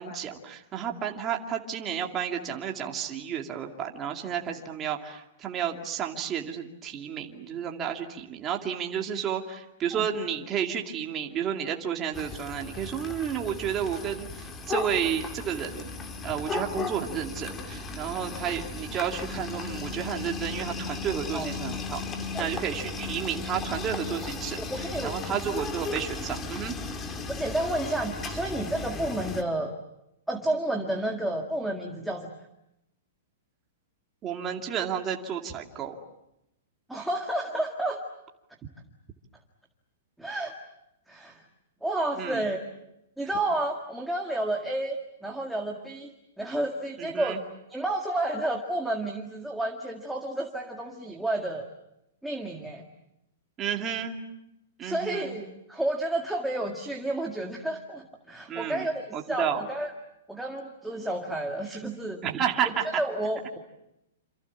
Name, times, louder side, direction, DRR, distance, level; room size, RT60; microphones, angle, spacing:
voice 1, 0.0-15.9 16.2-26.7 34.2-36.0 42.2-42.4 47.0-47.4 53.6-54.2 54.8-55.3 58.5-58.9 59.1-59.6 62.2-63.0, right 8 dB, 15° right, 2 dB, 2.4 m, -31 dB
sound 1, 12.1-29.4, left 4 dB, 15° left, 2.2 m, -36 dB
voice 2, 24.7-25.2 27.4-29.7 30.3-32.3 36.9-38.0 40.2-40.5 41.1-41.4 41.8-42.6 43.2-46.1 46.4-47.4 47.7-51.7 52.2-52.9 54.8-59.9 60.3-62.2 62.7-63.6, right 1 dB, ahead, 0 dB, 1.9 m, -31 dB
28.5 x 28.0 x 7.3 m, 0.84 s
hypercardioid pair, 170°, 0 cm